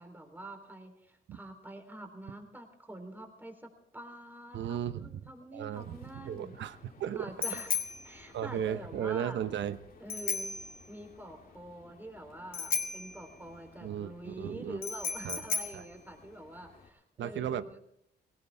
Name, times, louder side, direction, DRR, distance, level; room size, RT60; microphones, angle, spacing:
voice 1, 0.0-6.6 7.1-7.8 8.0-9.4 10.0-10.6 10.9-17.8, right 1 dB, 10° right, 5 dB, 3.6 m, -46 dB
voice 2, 4.5-5.2 5.5-6.0 6.2-7.3 8.3-9.8 13.8-14.8 15.2-15.4 15.7-15.8 17.2-17.6, right 9 dB, 65° right, 13 dB, 0.9 m, -35 dB
Bicycle bell, 5.7-16.9, left 5 dB, 45° left, 2.2 m, -38 dB
19.0 x 17.5 x 3.5 m, 0.77 s
cardioid pair, 90°, 20 cm